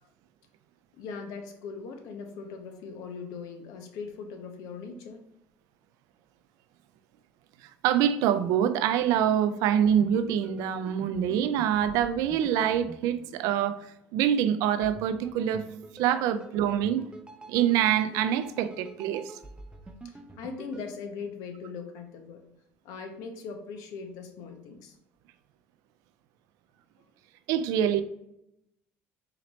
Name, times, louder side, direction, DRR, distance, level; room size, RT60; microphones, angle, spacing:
voice 1, 0.9-5.2 20.0-22.4 22.8-25.0, left 5 dB, 75° left, 0.7 m, -40 dB
voice 2, 7.6-15.6 16.0-17.0 17.5-19.4 27.5-28.0, right 9 dB, 75° right, 0.4 m, -25 dB
sound 1, 9.8-14.1 14.8-20.9, right 3 dB, 15° right, 0.5 m, -47 dB
4.1 x 2.9 x 3.0 m
supercardioid pair, 80°, 6 cm